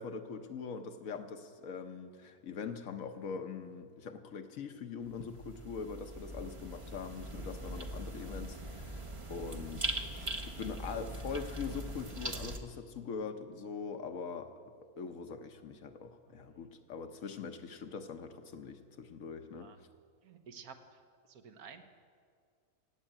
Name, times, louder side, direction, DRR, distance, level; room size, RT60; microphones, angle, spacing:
voice 1, 0.0-9.0 9.3-9.9 10.5-14.6 15.0-19.7, left 5 dB, 65° left, 7 dB, 1.2 m, -42 dB
sound 1, 5.0-12.6, right 1 dB, 25° right, 0.7 m, -41 dB
voice 2, 20.2-21.0 21.3-21.8, right 6 dB, 75° right, 8 dB, 1.5 m, -52 dB
15.5 x 8.3 x 8.9 m, 2.1 s
omnidirectional pair, 1.6 m